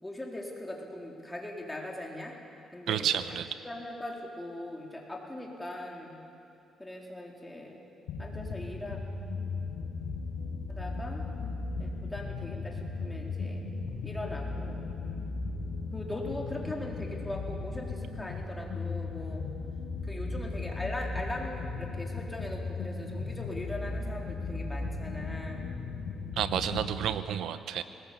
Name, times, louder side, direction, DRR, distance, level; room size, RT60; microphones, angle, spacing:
voice 1, 0.0-2.4 2.7-3.2 3.6-6.2 6.8-7.8 8.2-9.0 10.7-11.3 11.8-13.7 14.0-14.9 15.9-19.4 20.0-25.7, left 1 dB, 10° left, -1 dB, 4.1 m, -40 dB
voice 2, 2.9-3.5 26.4-27.8, right 10 dB, 75° right, 12 dB, 1.0 m, -30 dB
sound 1, 8.1-26.8, left 3 dB, 85° left, 4.6 m, -36 dB
20.5 x 20.0 x 8.6 m, 2.7 s
cardioid pair, 90°, 0 cm